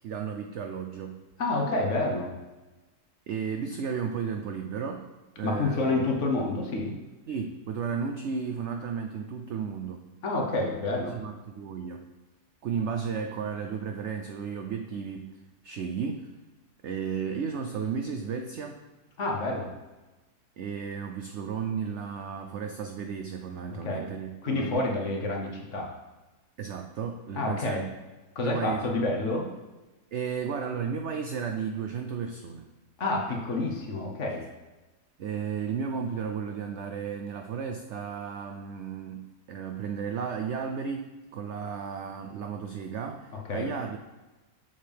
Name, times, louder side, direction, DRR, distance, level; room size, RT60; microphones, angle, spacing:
voice 1, 0.0-1.2 3.3-5.1 5.4-6.0 7.3-10.0 11.0-12.0 12.6-15.3 15.6-16.3 16.8-18.8 20.6-24.8 26.6-27.8 28.4-29.0 30.1-32.7 35.2-44.0, right 6 dB, 75° right, 5 dB, 0.6 m, -34 dB
voice 2, 1.4-2.3 5.4-6.9 10.2-11.2 19.2-19.7 23.7-24.1 24.4-25.9 27.4-27.8 28.3-29.5 33.0-34.4 43.5-43.7, left 2 dB, 50° left, 0 dB, 1.2 m, -28 dB
7.2 x 6.7 x 3.4 m, 1.1 s
omnidirectional pair, 1.7 m